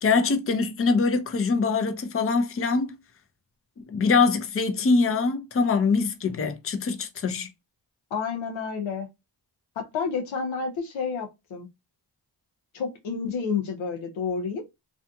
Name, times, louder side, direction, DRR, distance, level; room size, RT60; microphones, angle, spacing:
voice 1, 0.0-3.0 3.9-7.5, left 4 dB, 30° left, 0.6 m, -23 dB
voice 2, 8.1-9.1 9.8-11.7 12.7-14.6, left 5 dB, 85° left, 0.7 m, -30 dB
2.7 x 2.4 x 2.3 m
cardioid pair, 45°, 46 cm